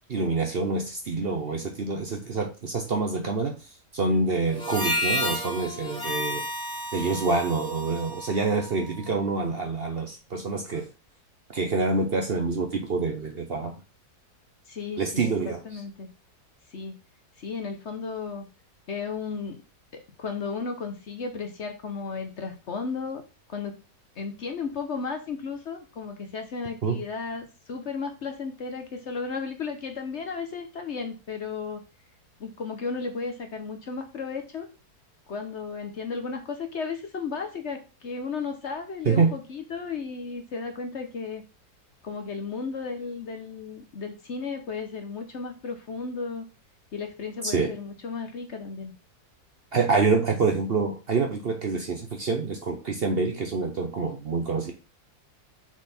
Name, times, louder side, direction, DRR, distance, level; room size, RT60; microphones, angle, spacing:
voice 1, 0.1-3.5 3.9-6.4 6.9-10.9 11.5-13.8 15.0-15.6 26.8-27.0 39.0-39.3 47.4-47.7 49.7-54.7, right 4 dB, 45° right, 3 dB, 0.9 m, -26 dB
Harmonica, 4.5-9.1, equal, 5° left, 1.9 m, -31 dB
voice 2, 14.7-16.1 16.7-16.9 17.4-18.4 18.9-19.6 19.9-23.2 23.5-23.8 24.2-31.8 32.4-34.7 35.3-41.4 42.0-46.4 46.9-48.9, left 5 dB, 50° left, 5 dB, 1.0 m, -34 dB
6.2 x 4.0 x 4.2 m, 0.31 s
omnidirectional pair, 1.7 m